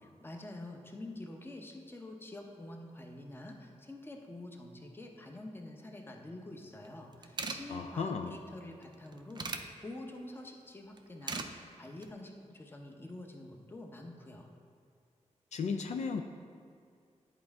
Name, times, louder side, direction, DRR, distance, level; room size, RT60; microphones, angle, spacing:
voice 1, 0.0-14.5, left 1 dB, 20° left, 2 dB, 0.8 m, -47 dB
sound 1, 6.8-6.9 7.1-7.6 8.8-9.6 11.0-11.5 11.8-12.1, right 4 dB, 35° right, 0.4 m, -38 dB
voice 2, 7.7-8.4 15.5-16.2, left 5 dB, 65° left, 5 dB, 0.4 m, -35 dB
10.0 x 4.4 x 3.5 m, 2.3 s
wide cardioid pair, 105°, 12 cm